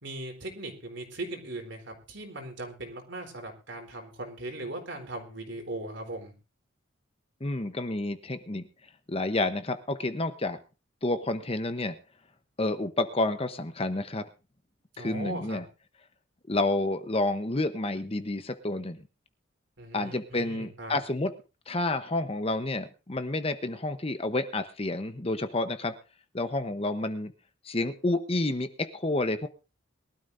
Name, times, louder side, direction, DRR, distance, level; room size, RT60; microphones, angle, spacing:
voice 1, 0.0-6.3 14.9-15.6 19.8-21.0, right 2 dB, 65° right, 3 dB, 3.8 m, -39 dB
voice 2, 7.4-8.7 9.1-10.6 11.0-12.0 12.6-14.2 15.0-15.6 16.5-19.0 19.9-21.3 21.7-25.9 26.3-27.3 27.6-29.5, left 2 dB, 30° left, 9 dB, 0.9 m, -29 dB
22.5 x 12.5 x 2.6 m, 0.31 s
head